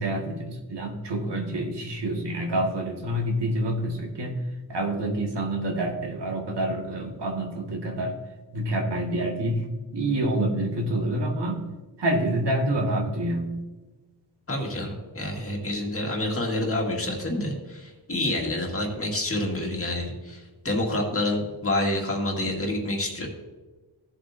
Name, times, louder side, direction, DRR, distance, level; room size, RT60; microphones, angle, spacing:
voice 1, 0.0-4.4 4.7-8.2 8.5-9.7 9.9-11.7 12.0-13.6, right 1 dB, 80° right, 1 dB, 1.9 m, -27 dB
voice 2, 14.5-23.3, left 1 dB, 35° left, 0 dB, 1.9 m, -28 dB
16.0 x 7.6 x 2.6 m, 1.3 s
wide cardioid pair, 160°, 41 cm